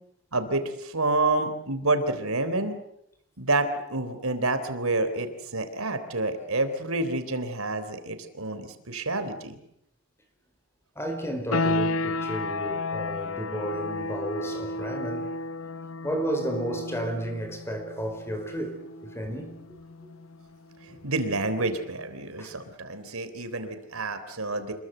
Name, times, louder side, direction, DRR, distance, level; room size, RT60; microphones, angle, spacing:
voice 1, 0.3-2.8 3.4-9.6 20.9-24.7, right 2 dB, 80° right, 3.5 m, -28 dB
voice 2, 10.9-15.4 16.0-19.5 22.4-22.5, right 1 dB, 10° left, 4.8 m, -32 dB
sound 1, 11.5-22.0, left 2 dB, 70° left, 0.9 m, -33 dB
27.0 x 22.0 x 8.0 m
head